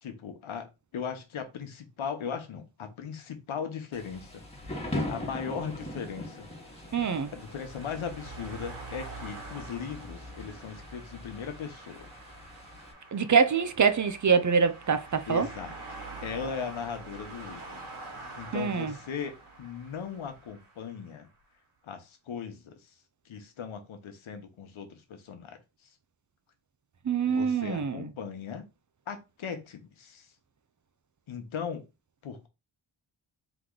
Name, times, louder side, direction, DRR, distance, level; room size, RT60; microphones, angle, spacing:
voice 1, 0.0-4.3 4.7-6.5 7.3-12.1 15.3-15.7 16.2-17.8 18.4-21.3 21.8-22.8 23.2-25.6 27.3-28.6 29.1-30.3 31.3-31.8 32.2-32.5, left 6 dB, 80° left, 1.1 m, -38 dB
Thunder / Rain, 3.9-12.9, left 1 dB, 15° left, 1.5 m, -41 dB
sound 1, 5.8-21.1, right 3 dB, 85° right, 2.1 m, -46 dB
voice 2, 6.9-7.3 13.1-15.5 18.5-18.9 27.1-28.1, right 6 dB, 40° right, 0.6 m, -25 dB
3.8 x 3.0 x 3.8 m
cardioid pair, 80°, 48 cm